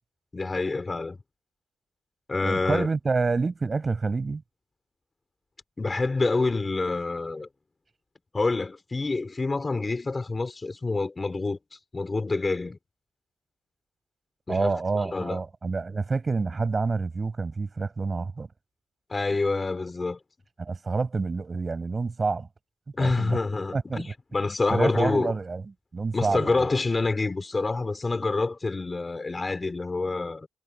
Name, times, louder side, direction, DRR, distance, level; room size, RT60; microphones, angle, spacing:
voice 1, 0.3-1.2 2.3-2.9 5.8-7.5 8.3-12.8 14.5-15.4 19.1-20.2 22.9-24.1 24.3-25.3 26.1-30.5, left 3 dB, 25° left, 4.1 m, -27 dB
voice 2, 2.4-4.4 14.5-18.5 20.6-22.5 23.0-23.4 23.7-24.1 24.7-25.6 25.9-26.7, right 4 dB, 30° right, 6.8 m, -28 dB
cardioid pair, 90°, 0 cm